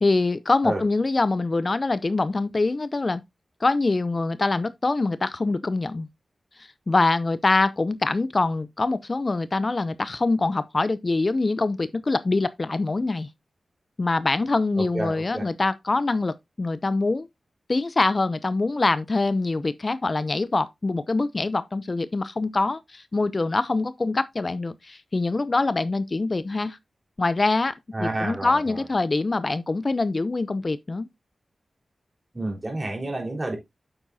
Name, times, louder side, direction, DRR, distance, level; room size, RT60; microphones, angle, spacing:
voice 1, 0.0-3.2 3.6-6.1 6.6-13.3 14.0-17.3 17.7-26.8 27.2-31.1, left 3 dB, 40° left, 0.5 m, -24 dB
voice 2, 14.8-15.5 27.9-28.8 32.3-33.6, right 2 dB, 30° right, 3.9 m, -30 dB
8.6 x 7.0 x 2.7 m
cardioid pair, 60°, 0 cm